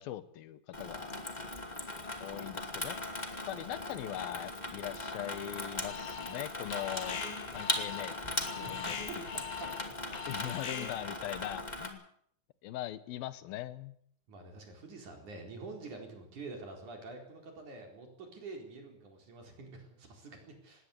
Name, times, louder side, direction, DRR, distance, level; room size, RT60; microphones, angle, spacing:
voice 1, 0.0-1.1 2.2-3.0 3.5-7.2 7.5-9.0 10.3-12.0 12.6-14.0, left 13 dB, 85° left, 15 dB, 2.9 m, -41 dB
Water tap faucet / Sink (filling or washing), 0.7-11.9, left 2 dB, 15° left, 1.7 m, -39 dB
voice 2, 0.8-2.9 8.6-9.7 10.1-10.3 10.8-10.9 14.3-20.9, right 3 dB, 55° right, 3 dB, 5.6 m, -48 dB
Alarm, 5.8-6.4 6.7-11.2, left 8 dB, 55° left, 3.7 m, -42 dB
20.0 x 17.5 x 8.4 m, 0.65 s
omnidirectional pair, 4.1 m